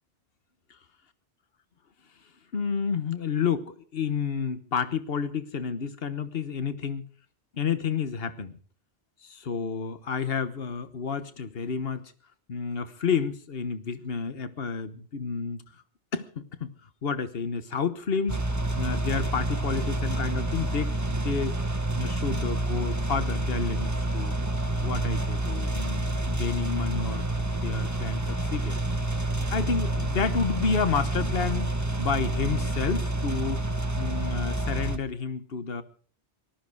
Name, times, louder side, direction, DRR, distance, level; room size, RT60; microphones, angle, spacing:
voice 1, 2.5-7.0 7.5-8.6 9.2-12.1 12.5-15.6 16.1-16.7 17.0-18.4 18.7-21.6 21.9-24.3 24.8-27.2 27.5-28.8 29.5-33.6 34.0-35.8, left 5 dB, 65° left, 11 dB, 1.4 m, -30 dB
sound 1, 18.3-35.0, right 2 dB, 15° right, 1.2 m, -28 dB
18.5 x 13.5 x 4.8 m, 0.42 s
omnidirectional pair, 1.0 m